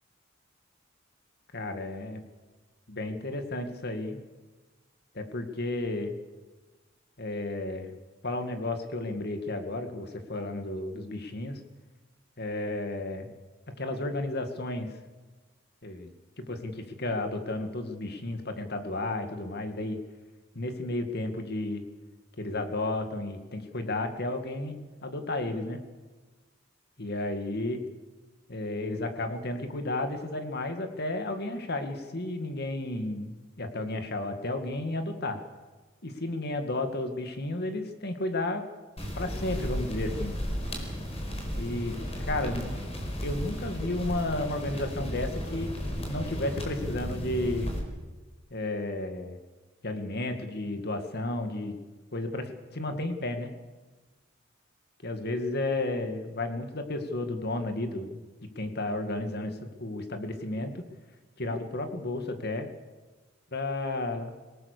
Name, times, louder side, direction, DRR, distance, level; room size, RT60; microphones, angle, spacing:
voice 1, 1.5-2.2 2.9-4.2 5.1-6.1 7.2-7.9 8.2-11.6 12.4-13.3 13.8-14.9 15.8-20.0 20.6-21.8 22.4-25.8 27.0-27.8 28.5-35.4 36.0-38.6 39.2-40.4 41.5-42.0 42.3-42.8 43.2-45.7 46.0-47.8 48.5-49.4 49.8-51.8 52.1-53.5 55.0-60.8 61.4-62.7 63.5-64.3, left 2 dB, 55° left, 6 dB, 2.2 m, -33 dB
sound 1, 39.0-47.8, equal, 30° left, 4.6 m, -34 dB
26.0 x 18.0 x 6.9 m, 1.3 s
head